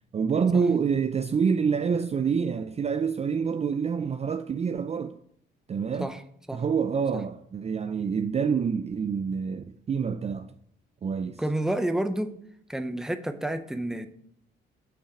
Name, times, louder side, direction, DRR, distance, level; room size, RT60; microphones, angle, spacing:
voice 1, 0.1-5.1 5.7-6.1 6.5-10.5 11.0-11.4, right 6 dB, 30° right, 0.5 m, -27 dB
voice 2, 11.4-12.3 12.7-14.1, right 1 dB, 5° right, 0.8 m, -29 dB
7.3 x 5.9 x 5.9 m
cardioid pair, 90°, 20 cm